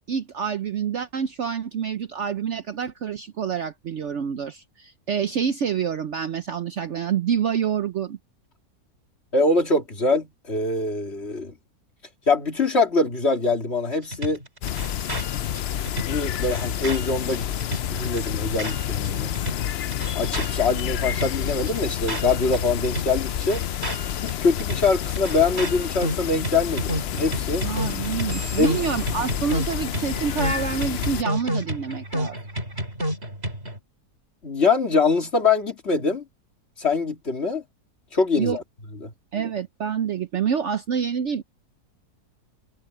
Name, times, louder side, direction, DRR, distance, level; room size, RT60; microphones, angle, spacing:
voice 1, 0.1-8.2 27.6-32.4 38.4-38.6 39.3-41.4, right 7 dB, 60° right, 0.9 m, -27 dB
voice 2, 9.3-11.5 12.3-14.4 16.0-17.5 17.9-19.3 20.2-23.6 24.2-27.7 28.6-28.8 34.4-36.2 36.8-37.6 38.1-38.6 39.0-39.1, left 3 dB, 40° left, 2.8 m, -23 dB
sound 1, 14.1-19.1 19.3-22.6 22.8-33.8, equal, 40° right, 6.7 m, -31 dB
sound 2, 14.6-31.2, left 10 dB, 70° left, 0.6 m, -29 dB
omnidirectional pair, 1.7 m